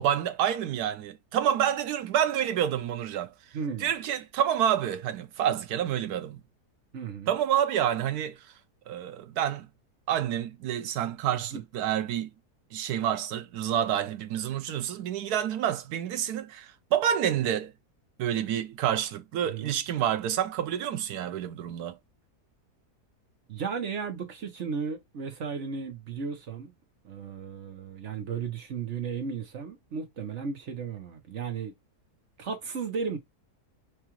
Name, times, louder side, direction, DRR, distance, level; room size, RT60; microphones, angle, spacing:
voice 1, 0.0-3.3 3.8-6.4 7.3-8.4 8.9-9.7 10.1-12.3 12.7-17.7 18.2-22.0, right 10 dB, 75° right, 1.1 m, -28 dB
voice 2, 3.5-3.9 6.9-7.3 11.5-11.6 19.4-19.8 23.5-26.7 27.0-31.7 32.4-33.2, right 6 dB, 55° right, 1.1 m, -35 dB
4.8 x 2.4 x 3.0 m
omnidirectional pair, 1.7 m